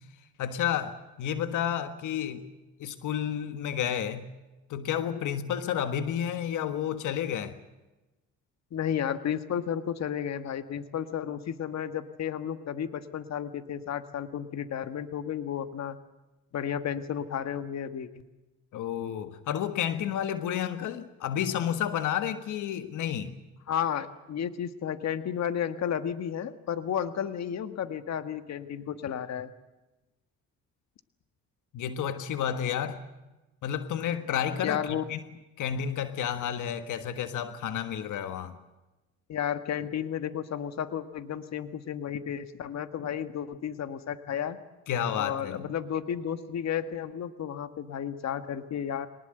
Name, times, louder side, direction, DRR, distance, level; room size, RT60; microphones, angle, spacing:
voice 1, 0.4-2.4 2.8-4.3 4.7-7.6 18.7-23.4 31.7-33.0 33.6-35.2 35.6-38.5 44.9-45.6, left 9 dB, 80° left, 10 dB, 1.6 m, -31 dB
voice 2, 8.7-16.0 16.5-18.2 23.7-29.5 34.6-35.0 39.3-44.6 45.1-49.1, left 9 dB, 60° left, 10 dB, 1.6 m, -32 dB
23.0 x 20.0 x 7.9 m, 1.0 s
cardioid pair, 90°, 30 cm